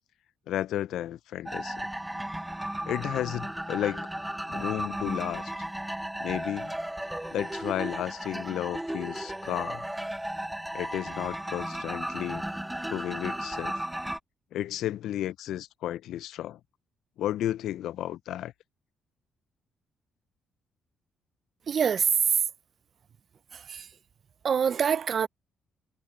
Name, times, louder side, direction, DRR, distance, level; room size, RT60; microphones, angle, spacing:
voice 1, 0.5-1.9 2.9-4.1 4.5-5.5 6.2-6.7 7.3-9.8 10.7-12.4 12.9-13.8 14.5-16.6 17.2-18.5, left 12 dB, 80° left, 0.4 m, -33 dB
sound 1, 1.5-14.2, right 1 dB, 5° right, 1.8 m, -35 dB
voice 2, 21.7-22.4 23.5-23.9 24.4-25.3, right 7 dB, 50° right, 0.5 m, -25 dB
cardioid pair, 90°, 0 cm